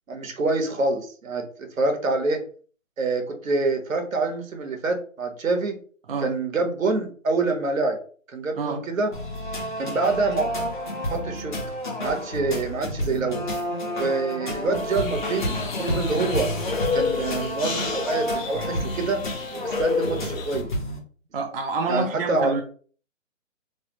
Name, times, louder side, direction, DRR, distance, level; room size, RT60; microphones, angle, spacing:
voice 1, 0.1-2.4 3.0-5.8 6.2-8.0 8.3-9.1 9.8-10.5 11.1-11.6 12.0-13.4 14.0-16.5 16.9-19.2 19.6-20.7 21.9-22.6, right 3 dB, 80° right, 5 dB, 1.0 m, -26 dB
sound 1, 9.1-21.0, equal, 40° left, 0.7 m, -30 dB
sound 2, 14.7-20.6, left 5 dB, 75° left, 0.9 m, -31 dB
voice 2, 21.3-22.6, right 4 dB, 45° right, 2 dB, 0.5 m, -27 dB
3.2 x 2.0 x 3.0 m, 0.44 s
hypercardioid pair, 165°, 39 cm